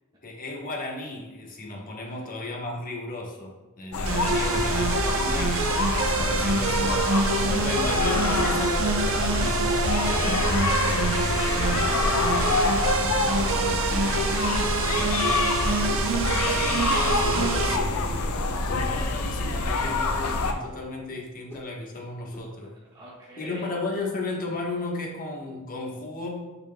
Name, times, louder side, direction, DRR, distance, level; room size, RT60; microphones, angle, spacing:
voice 1, 0.2-9.8 10.1-10.8 16.5-22.7 23.4-26.5, left 2 dB, 40° left, -1 dB, 1.1 m, -34 dB
sound 1, 3.9-20.5, left 2 dB, 80° left, 0.6 m, -26 dB
sound 2, 4.1-17.8, right 4 dB, 65° right, 0.6 m, -26 dB
voice 2, 10.0-13.0 13.3-15.5 22.9-23.7, right 1 dB, 20° right, -8 dB, 1.8 m, -39 dB
sound 3, 11.9-12.1 12.9-13.1 13.9-14.1 14.9-15.1 15.9-16.1 16.9-17.1 17.8-18.0 18.7-18.9 19.5-19.7 20.2-20.5 21.5-21.7 22.3-22.5, left 2 dB, 10° left, 1.3 m, -44 dB
6.9 x 6.3 x 2.2 m, 1.2 s
head